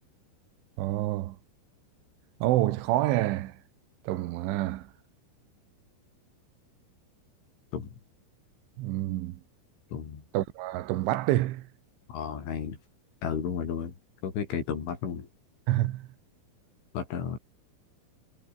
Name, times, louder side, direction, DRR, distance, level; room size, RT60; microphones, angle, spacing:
voice 1, 0.8-1.4 2.4-3.6 4.1-4.9 8.8-9.4 10.3-11.7 15.7-16.1, right 16 dB, 85° right, 3.7 m, -27 dB
voice 2, 9.9-10.2 12.1-12.8 13.2-14.0 14.2-15.3 16.9-17.4, left 7 dB, 85° left, 7.0 m, -33 dB
omnidirectional pair, 5.4 m